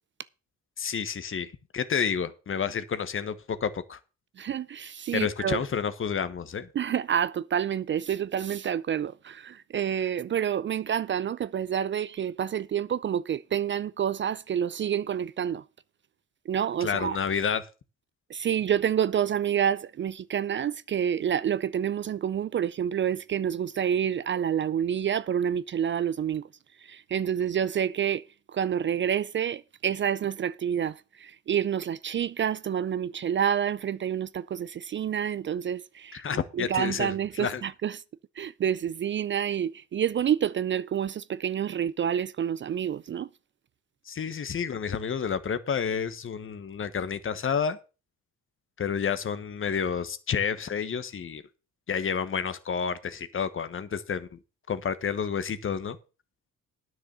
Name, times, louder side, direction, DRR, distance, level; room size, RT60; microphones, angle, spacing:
voice 1, 0.8-4.0 5.1-6.7 16.8-17.7 36.1-37.6 44.1-47.8 48.8-51.4 51.9-54.4 54.7-56.0, left 7 dB, 45° left, 1.2 m, -30 dB
voice 2, 4.4-5.6 6.7-15.6 16.5-17.2 18.3-26.4 26.8-36.2 36.5-38.0 38.4-43.3, right 9 dB, 40° right, 0.4 m, -28 dB
9.9 x 6.2 x 6.7 m
cardioid pair, 90°, 30 cm